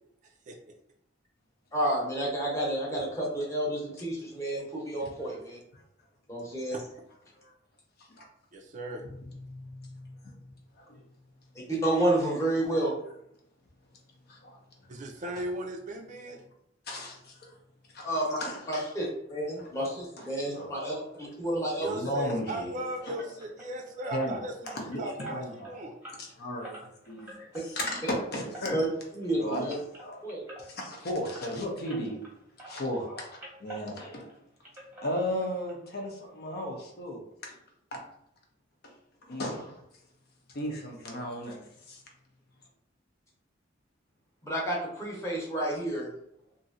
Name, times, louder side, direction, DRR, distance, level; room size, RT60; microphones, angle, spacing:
voice 1, 1.7-5.6 6.3-6.8 11.7-12.9 18.0-18.4 18.7-22.0 28.7-28.9 29.1-29.7 30.2-30.4 44.4-46.1, right 1 dB, 15° left, -4 dB, 1.0 m, -30 dB
voice 2, 8.5-9.0 14.9-16.4 21.8-26.0, right 1 dB, 40° right, 2 dB, 0.4 m, -37 dB
voice 3, 9.4-10.3 10.8-11.0 14.3-14.6 16.9-17.5 17.9-18.1 18.4-18.9 19.6-19.7 20.2-21.4 21.8-22.7 23.0-23.2 24.1-24.4 24.7-25.0 25.3-25.7 26.2-26.8 27.1-28.8 29.4-30.2 30.6-32.2 32.7-34.3 35.0-37.5 37.9-38.0 38.8-38.9 39.2-39.8 40.5-42.0, equal, 55° left, 0 dB, 0.7 m, -35 dB
sound 1, 23.2-32.3 32.6-34.4 34.6-35.7 36.0-36.1 36.6-36.7 37.0-37.1, right 1 dB, 10° right, 0.9 m, -48 dB
3.0 x 2.6 x 2.6 m, 0.75 s
head